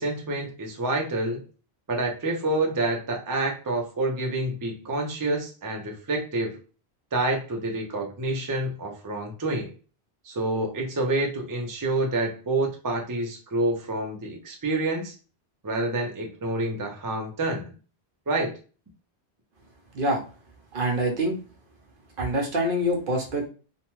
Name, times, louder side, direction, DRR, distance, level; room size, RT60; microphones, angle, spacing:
voice 1, 0.0-1.4 1.9-6.6 7.1-9.7 10.2-15.1 15.6-17.7 18.3-18.5, right 2 dB, 25° right, 1 dB, 0.5 m, -28 dB
voice 2, 20.7-21.4 22.2-23.5, right 1 dB, 60° right, 2 dB, 0.8 m, -25 dB
2.9 x 2.2 x 3.0 m, 0.35 s
omnidirectional pair, 1.1 m